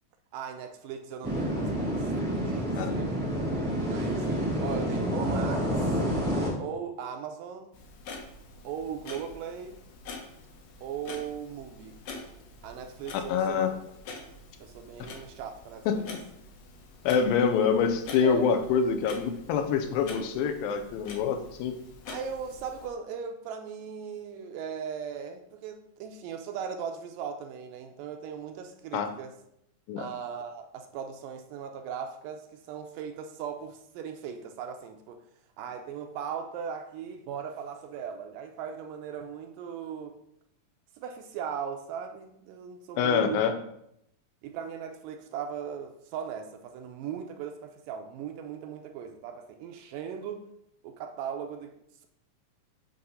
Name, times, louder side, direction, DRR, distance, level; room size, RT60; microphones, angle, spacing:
voice 1, 0.3-2.1 2.4-4.3 4.6-6.0 6.6-7.7 8.6-9.8 10.8-12.0 12.6-13.6 14.6-16.0 18.2-18.6 22.1-29.3 30.0-35.2 35.6-40.2 41.0-43.4 44.4-50.5 50.8-51.7, right 7 dB, 80° right, 5 dB, 2.0 m, -38 dB
sound 1, 1.2-6.5, equal, 5° right, 0.8 m, -28 dB
Clock, 7.7-22.9, left 3 dB, 70° left, 1.8 m, -46 dB
voice 2, 13.3-13.7 15.9-16.0 17.1-21.7 28.9-29.1 29.9-30.1 43.0-43.5, left 6 dB, 90° left, 6 dB, 2.4 m, -25 dB
7.7 x 2.9 x 5.4 m, 0.77 s
omnidirectional pair, 4.1 m